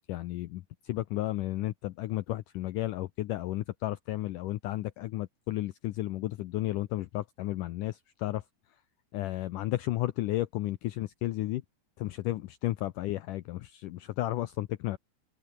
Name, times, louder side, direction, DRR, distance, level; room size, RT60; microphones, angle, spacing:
voice 1, 0.0-8.4 9.1-11.6 12.0-15.0, left 16 dB, 80° left, 1.9 m, -33 dB
open air
omnidirectional pair, 4.8 m